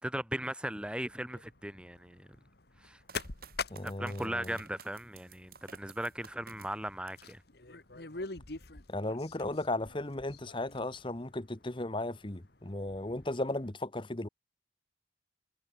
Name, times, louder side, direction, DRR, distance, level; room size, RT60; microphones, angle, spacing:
voice 1, 0.0-2.3 2.8-3.0 3.8-7.4, right 1 dB, 5° right, 3.2 m, -38 dB
sound 1, 0.7-13.7, left 4 dB, 60° left, 2.0 m, -47 dB
sound 2, 3.1-7.4 7.8-8.4, right 6 dB, 55° right, 6.2 m, -55 dB
voice 2, 3.7-4.5 8.9-14.3, left 2 dB, 25° left, 1.2 m, -35 dB
head